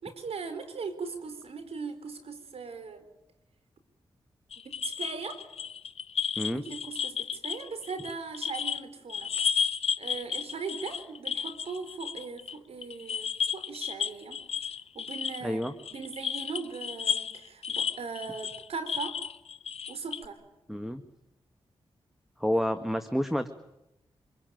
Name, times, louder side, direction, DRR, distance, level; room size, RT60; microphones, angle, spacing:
voice 1, 0.0-3.1 4.6-5.4 6.5-9.3 10.0-14.4 14.9-15.6 15.9-19.2 19.9-20.4, right 5 dB, 75° right, 9 dB, 4.1 m, -39 dB
sound 1, 4.5-8.8 9.1-12.6 12.8-20.3, left 7 dB, 75° left, 1.0 m, -33 dB
voice 2, 15.4-15.7 20.7-21.0 22.4-23.5, equal, ahead, 9 dB, 1.7 m, -29 dB
25.5 x 21.5 x 9.3 m, 0.89 s
cardioid pair, 50°, 10 cm